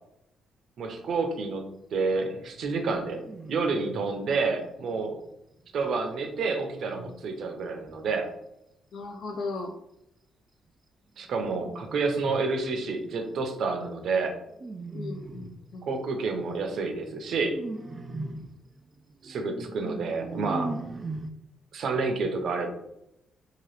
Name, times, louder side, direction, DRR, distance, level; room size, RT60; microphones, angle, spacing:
voice 1, 0.8-1.6 1.9-3.2 3.5-5.1 5.7-8.3 11.2-14.4 15.8-17.6 19.2-20.7 21.7-22.7, right 4 dB, 65° right, 4 dB, 0.6 m, -29 dB
sound 1, 2.1-2.6 3.1-4.2 5.5-8.0 11.3-12.8 14.5-15.7 16.4-21.3, right 2 dB, 30° right, 0.3 m, -40 dB
voice 2, 8.9-9.7 14.9-15.9 18.1-18.4, left 3 dB, 70° left, 2 dB, 0.3 m, -37 dB
2.9 x 2.3 x 3.2 m, 0.82 s
cardioid pair, 90°, 0 cm